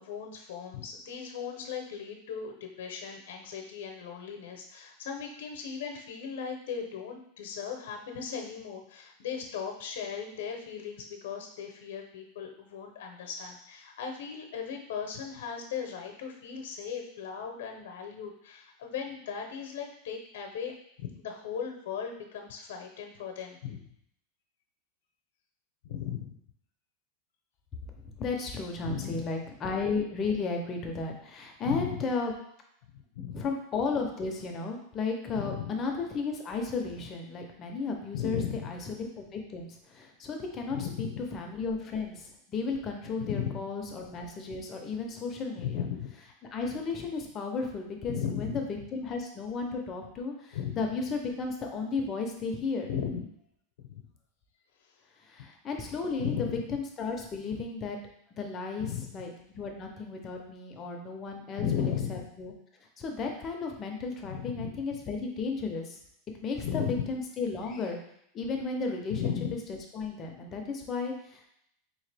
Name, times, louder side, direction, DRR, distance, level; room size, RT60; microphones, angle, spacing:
voice 1, 0.0-20.7 21.0-23.8 25.8-26.4 28.8-29.2 31.6-32.0 32.9-33.4 35.4-35.7 38.1-38.7 40.7-41.1 43.2-43.6 45.6-46.1 48.1-48.6 50.5-50.8 52.9-53.2 53.9-54.0 56.2-56.6 58.8-59.0 61.6-62.3 64.3-64.7 66.6-67.0 69.1-69.5, left 8 dB, 75° left, 3 dB, 0.7 m, -36 dB
voice 2, 28.1-32.3 33.3-41.1 41.3-45.9 46.5-52.9 55.2-58.0 58.4-62.5 63.0-66.0 66.4-68.0 68.3-69.3 69.9-71.5, left 4 dB, 25° left, 2 dB, 0.6 m, -34 dB
3.8 x 2.8 x 3.3 m, 0.72 s
supercardioid pair, 155°, 0 cm